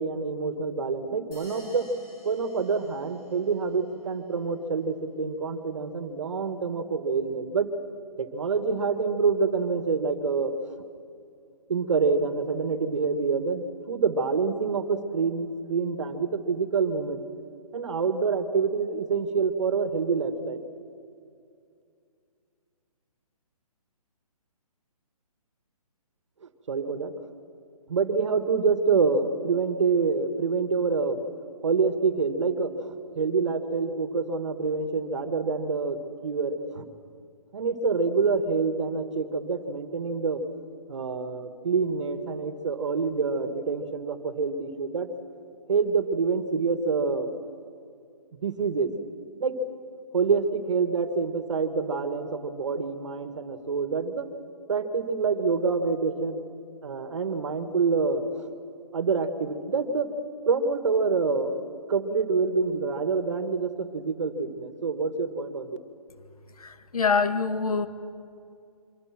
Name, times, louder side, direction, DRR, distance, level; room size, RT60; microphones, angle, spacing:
voice 1, 0.0-1.9 2.2-7.7 8.2-10.8 11.7-17.2 17.7-20.6 26.4-27.1 27.9-31.2 31.6-36.9 37.5-40.4 40.9-45.1 45.7-47.3 48.3-48.9 49.4-49.6 50.1-54.3 54.7-56.4 56.8-58.5 58.9-60.1 60.5-61.6 61.9-65.8, right 4 dB, 50° right, 9 dB, 1.8 m, -26 dB
sound 1, 1.3-3.6, left 1 dB, 15° left, 6.2 m, -52 dB
voice 2, 66.6-67.9, left 5 dB, 70° left, 9 dB, 1.9 m, -25 dB
26.5 x 24.5 x 6.1 m, 2.4 s
hypercardioid pair, 175°, 20 cm